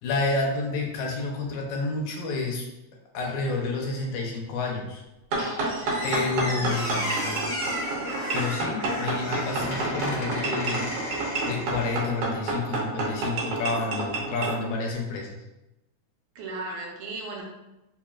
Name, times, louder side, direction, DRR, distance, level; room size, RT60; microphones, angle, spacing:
voice 1, 0.0-2.7 3.1-5.0 6.0-7.4 8.3-10.9 11.4-15.4, left 3 dB, 80° left, 0 dB, 2.1 m, -29 dB
sound 1, 5.3-14.6, right 2 dB, 65° right, 1.8 m, -29 dB
Squeak, 5.4-12.3, left 1 dB, 50° left, 0.8 m, -34 dB
voice 2, 6.5-7.1 9.1-9.3 16.4-17.4, right 2 dB, 80° right, -2 dB, 2.1 m, -37 dB
4.8 x 3.0 x 2.3 m, 0.97 s
omnidirectional pair, 3.4 m